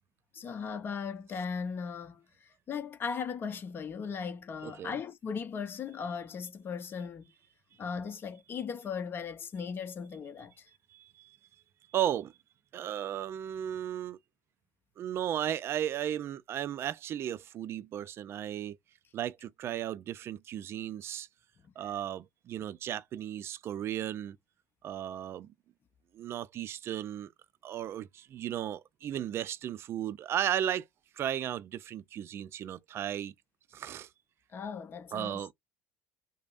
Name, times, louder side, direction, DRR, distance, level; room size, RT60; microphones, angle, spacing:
voice 1, 0.3-7.3 7.8-10.7 21.6-21.7 34.5-35.5, left 6 dB, 40° left, 0.9 m, -38 dB
voice 2, 10.9-11.4 11.9-12.3 12.7-14.2 15.0-18.8 19.1-21.3 21.8-24.4 24.8-25.5 26.1-27.3 27.6-30.9 31.2-33.3 33.7-34.1 35.1-35.5, right 11 dB, 50° right, 0.4 m, -35 dB
5.1 x 2.1 x 2.5 m
supercardioid pair, 80°, 6 cm